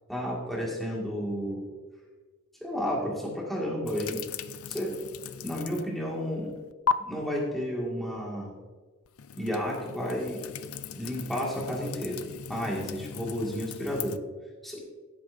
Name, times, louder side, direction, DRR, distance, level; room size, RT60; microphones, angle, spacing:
voice 1, 0.1-1.6 2.6-4.2 4.7-5.0 5.4-6.5 7.0-8.6 9.4-10.5 11.0-12.2 12.5-14.2 14.6-14.8, equal, ahead, -4 dB, 1.8 m, -32 dB
sound 1, 3.9-6.0 6.3-6.9 9.1-14.2, left 6 dB, 70° left, 0.5 m, -36 dB
15.5 x 8.6 x 2.6 m, 1.4 s
head